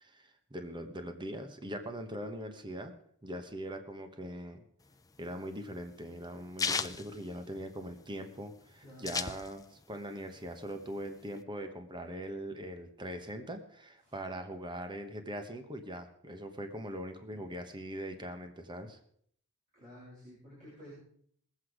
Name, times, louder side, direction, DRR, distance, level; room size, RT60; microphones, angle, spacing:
voice 1, 0.0-2.9 3.2-4.6 5.2-19.0, equal, 20° right, 7 dB, 1.1 m, -41 dB
sound 1, 4.9-8.0 8.3-8.4 8.6-9.9 10.3-11.4, left 5 dB, 15° left, 0.5 m, -36 dB
voice 2, 8.8-9.2 14.0-14.1 19.7-20.9, left 1 dB, 35° right, -7 dB, 6.8 m, -52 dB
20.5 x 8.0 x 4.9 m, 0.64 s
head